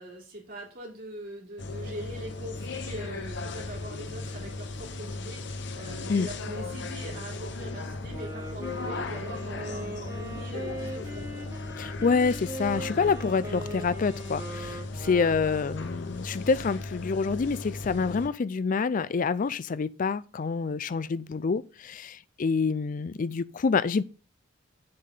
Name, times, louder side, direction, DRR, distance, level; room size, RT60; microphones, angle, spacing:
voice 1, 0.0-11.3 15.0-15.2, right 1 dB, 50° right, 3.5 m, -42 dB
sound 1, 1.6-18.3, left 2 dB, 60° left, 0.8 m, -37 dB
Wind instrument woodwind instrument, 8.1-15.9, right 1 dB, 20° right, 2.9 m, -40 dB
voice 2, 11.8-24.0, left 5 dB, 45° left, 0.4 m, -27 dB
7.7 x 7.5 x 3.7 m
head